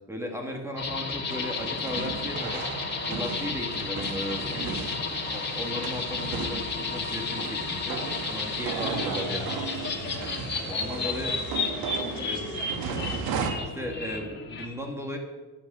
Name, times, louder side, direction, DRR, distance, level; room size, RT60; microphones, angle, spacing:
voice 1, 0.1-2.6 3.1-4.9 5.2-9.8 10.2-11.3 12.2-12.5 13.7-15.2, left 1 dB, 5° right, 1 dB, 2.3 m, -36 dB
sound 1, 0.8-14.7, left 4 dB, 30° left, 2.3 m, -32 dB
sound 2, 1.3-13.5, right 6 dB, 75° right, 1.9 m, -36 dB
voice 2, 10.5-11.5 11.9-13.2, left 1 dB, 10° left, 1 dB, 3.9 m, -43 dB
11.5 x 9.9 x 8.2 m, 1.3 s
cardioid pair, 110°, 36 cm